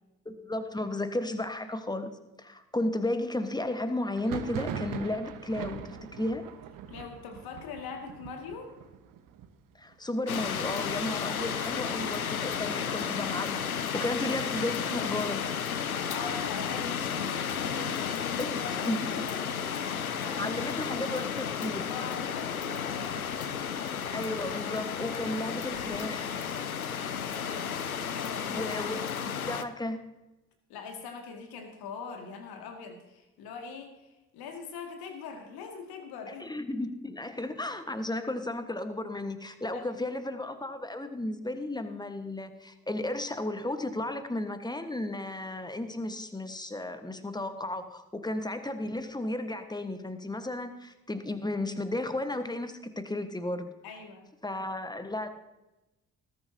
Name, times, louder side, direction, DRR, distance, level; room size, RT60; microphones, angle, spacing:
voice 1, 0.2-2.1 2.4-6.5 9.7-15.5 18.4-19.1 20.4-21.8 24.1-26.3 28.5-30.0 36.3-53.7 54.4-55.3, left 1 dB, 10° left, 9 dB, 1.4 m, -34 dB
Thunder, 4.1-13.6 13.9-14.6 14.8-15.8 16.2-17.9, right 8 dB, 50° right, 1.1 m, -43 dB
voice 2, 6.9-8.7 11.2-11.5 12.0-12.1 16.1-20.6 21.9-23.9 27.3-28.6 30.7-36.5 39.7-40.0 53.8-54.3, left 5 dB, 60° left, 4 dB, 2.2 m, -43 dB
sound 1, 10.3-29.6, left 7 dB, 90° left, 0.5 m, -33 dB
19.5 x 10.5 x 2.8 m, 1.0 s
figure-of-eight pair, 45°, 41 cm